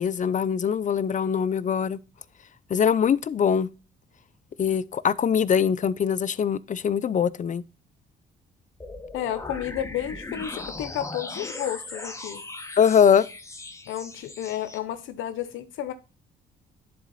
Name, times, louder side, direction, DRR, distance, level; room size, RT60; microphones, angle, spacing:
voice 1, 0.0-2.0 2.7-3.7 4.6-7.6 12.8-13.2, left 7 dB, 40° left, 0.5 m, -22 dB
sound 1, 8.8-14.8, left 2 dB, 15° left, 1.1 m, -38 dB
voice 2, 9.1-12.4 13.9-15.9, left 11 dB, 85° left, 0.7 m, -32 dB
10.0 x 4.1 x 4.0 m
cardioid pair, 90°, 20 cm